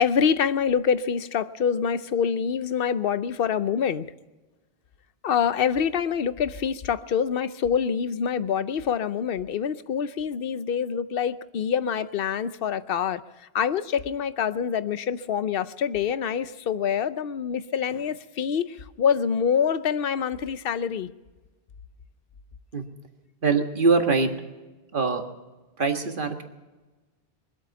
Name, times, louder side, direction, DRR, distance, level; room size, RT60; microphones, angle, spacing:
voice 1, 0.0-4.0 5.2-13.2 13.5-21.1, left 7 dB, 65° left, 14 dB, 0.9 m, -25 dB
voice 2, 23.4-24.3 24.9-25.2 25.8-26.4, right 4 dB, 55° right, 5 dB, 1.8 m, -22 dB
23.5 x 8.4 x 7.1 m, 1.2 s
omnidirectional pair, 1.1 m